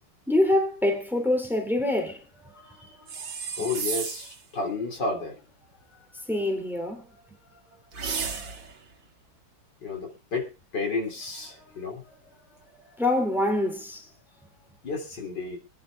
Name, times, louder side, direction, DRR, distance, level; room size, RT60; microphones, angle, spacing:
voice 1, 0.3-2.7 6.3-7.1 12.1-12.2 13.0-14.1, left 1 dB, ahead, 3.3 m, -25 dB
sound 1, 3.1-4.4 7.9-8.8, right 5 dB, 85° right, 2.8 m, -33 dB
voice 2, 3.6-5.4 9.8-12.0 14.8-15.6, left 3 dB, 65° left, 4.0 m, -32 dB
25.5 x 11.0 x 2.4 m
omnidirectional pair, 2.0 m